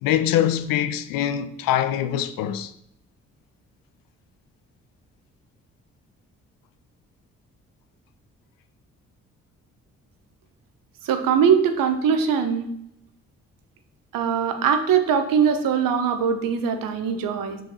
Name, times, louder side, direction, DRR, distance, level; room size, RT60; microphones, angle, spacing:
voice 1, 0.0-2.7, left 10 dB, 65° left, 0.6 m, -23 dB
voice 2, 11.0-12.7 14.1-17.6, right 7 dB, 60° right, 1.0 m, -21 dB
5.6 x 5.5 x 4.2 m
hypercardioid pair, 40°, 37 cm